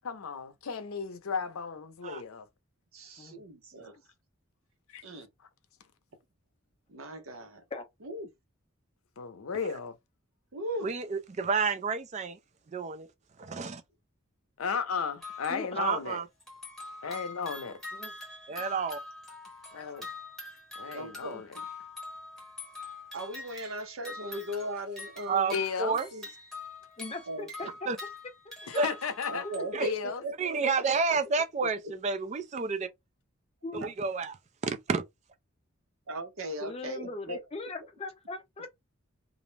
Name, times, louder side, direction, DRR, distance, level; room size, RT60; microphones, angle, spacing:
voice 1, 0.0-2.5 4.9-5.0 9.2-9.9 14.6-16.2 17.0-17.8 19.7-20.1 20.8-21.5 25.5-26.0 28.7-29.5 29.8-30.2, left 6 dB, 90° left, 0.6 m, -34 dB
voice 2, 2.9-4.0 5.0-5.3 6.9-7.6 8.0-8.3 10.5-10.9 20.8-21.4 23.1-25.6 26.1-26.3 27.3-27.7 29.3-29.7 30.2-31.3 31.8-31.9 33.8-33.9 36.1-37.4, right 1 dB, 80° right, 0.8 m, -38 dB
voice 3, 10.8-12.4 12.7-13.1 13.4-13.8 15.8-16.2 18.5-19.0 25.3-26.1 27.9-28.0 28.8-28.9 29.7-29.9 30.4-32.9 33.7-34.3 34.6-35.0, right 4 dB, 35° right, 0.4 m, -30 dB
sound 1, 15.2-16.0 16.4-29.9, left 3 dB, ahead, 0.8 m, -44 dB
voice 4, 15.5-15.8 17.7-18.1 18.6-18.7 27.0-27.7 28.4-28.8 29.4-29.7 33.6-33.9 36.6-38.8, left 2 dB, 30° left, 0.5 m, -40 dB
2.5 x 2.0 x 3.1 m
head